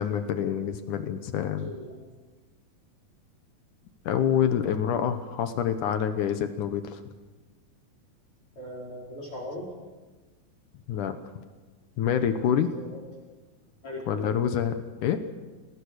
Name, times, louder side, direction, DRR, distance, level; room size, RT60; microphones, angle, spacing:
voice 1, 0.0-1.7 4.1-7.0 10.9-11.2 12.0-12.7 14.1-14.8 15.0-15.2, left 8 dB, 65° left, 9 dB, 2.3 m, -26 dB
voice 2, 1.4-2.0 8.6-9.7 12.5-13.0 13.8-14.4, left 1 dB, 35° left, -1 dB, 5.3 m, -39 dB
27.5 x 18.5 x 6.6 m, 1.3 s
omnidirectional pair, 4.3 m